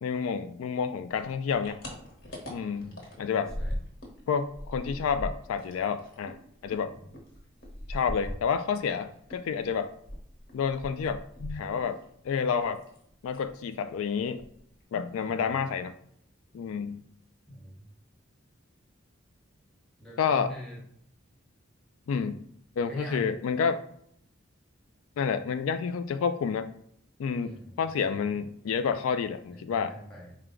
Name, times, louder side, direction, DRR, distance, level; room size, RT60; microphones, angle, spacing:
voice 1, 0.0-1.8 2.5-3.5 4.3-6.4 6.6-6.9 7.9-9.9 10.5-12.8 13.2-14.4 14.9-15.9 16.5-17.0 20.2-20.5 22.1-22.4 22.8-23.8 25.2-26.7 27.2-29.9, left 6 dB, 85° left, 10 dB, 0.3 m, -29 dB
sound 1, 1.2-4.2 4.4-8.9 9.3-12.0 12.3-13.0 13.3-13.5 13.9-14.0 14.2-14.8, equal, 55° left, 1.1 m, -40 dB
voice 2, 3.3-3.8 6.9-7.2 15.2-15.6 17.5-17.9 20.0-20.8 22.8-23.3 27.4-28.4 29.5-30.4, equal, 5° left, -4 dB, 0.9 m, -45 dB
4.5 x 2.1 x 3.7 m, 0.69 s
head